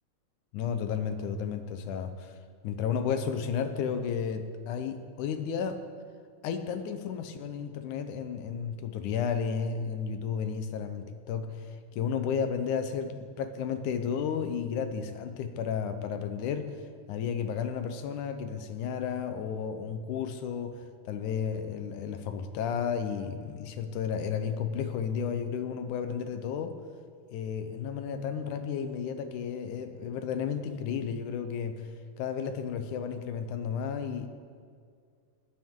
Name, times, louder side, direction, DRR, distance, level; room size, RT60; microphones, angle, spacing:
voice 1, 0.5-2.4 2.6-5.8 6.4-16.8 17.1-26.8 27.3-31.9 32.2-34.3, left 7 dB, 80° left, 8 dB, 2.3 m, -33 dB
16.0 x 12.0 x 3.7 m, 2.2 s
omnidirectional pair, 3.5 m